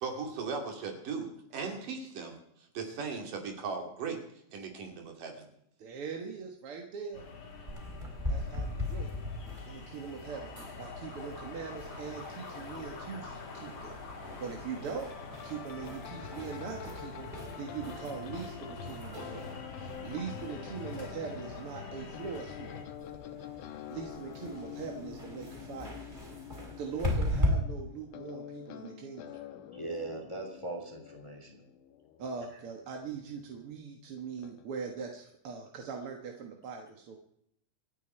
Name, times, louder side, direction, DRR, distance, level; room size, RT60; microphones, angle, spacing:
voice 1, 0.0-2.4 2.7-4.2 4.5-5.5, right 5 dB, 80° right, 3 dB, 4.1 m, -37 dB
voice 2, 5.8-7.3 8.3-9.1 9.7-10.5 10.8-14.0 14.4-15.1 15.4-19.4 19.7-22.7 23.9-26.0 26.8-29.3 32.2-37.2, right 6 dB, 50° right, 2 dB, 2.0 m, -41 dB
sound 1, 7.1-22.8, left 3 dB, 50° left, 3.3 m, -45 dB
sound 2, 7.7-27.5, left 2 dB, 15° right, 4.1 m, -40 dB
sound 3, 15.1-33.5 34.4-34.7, left 10 dB, 75° left, 2.6 m, -47 dB
voice 3, 29.7-31.6, right 2 dB, 10° left, 3 dB, 2.4 m, -40 dB
27.5 x 9.3 x 4.4 m, 0.75 s
omnidirectional pair, 3.8 m